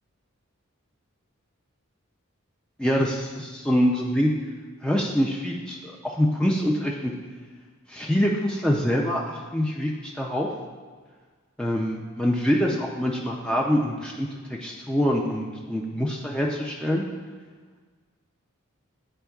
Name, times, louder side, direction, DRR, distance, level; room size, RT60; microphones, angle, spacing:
voice 1, 2.8-4.3 4.8-7.1 7.9-10.5 11.6-17.0, equal, 5° left, -2 dB, 0.3 m, -25 dB
10.0 x 4.4 x 2.3 m, 1.5 s
head